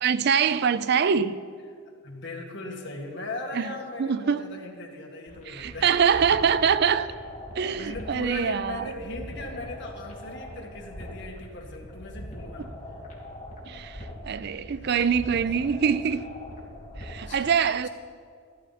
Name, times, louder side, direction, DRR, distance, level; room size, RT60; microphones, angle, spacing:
voice 1, 0.0-1.4 3.5-3.7 4.0-4.4 5.5-7.1 7.6-8.9 13.7-16.3 17.0-17.9, right 7 dB, 50° right, 0.4 m, -24 dB
voice 2, 2.0-6.3 7.8-12.7 14.7-14.9 17.3-17.9, left 2 dB, 60° left, 2.0 m, -39 dB
sound 1, 5.3-17.3, left 1 dB, 40° left, 2.5 m, -42 dB
14.0 x 13.5 x 4.2 m
head